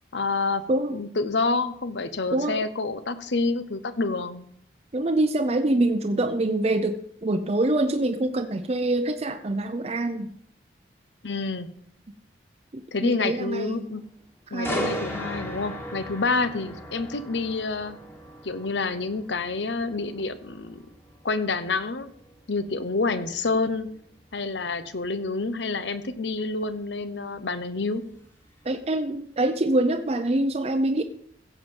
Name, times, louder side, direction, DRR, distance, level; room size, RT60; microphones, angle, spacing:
voice 1, 0.1-0.6 0.9-4.5 11.2-11.7 12.9-14.0 14.5-18.0 18.4-20.8 21.2-22.1 22.5-23.9 24.3-28.0, left 3 dB, 80° left, 13 dB, 0.9 m, -28 dB
voice 2, 4.9-10.3 12.7-13.8 14.5-14.9 28.6-31.0, right 2 dB, 35° right, 6 dB, 0.6 m, -25 dB
sound 1, 14.6-28.5 28.9-29.2, equal, 15° left, 1.7 m, -38 dB
16.0 x 7.4 x 5.4 m, 0.68 s
head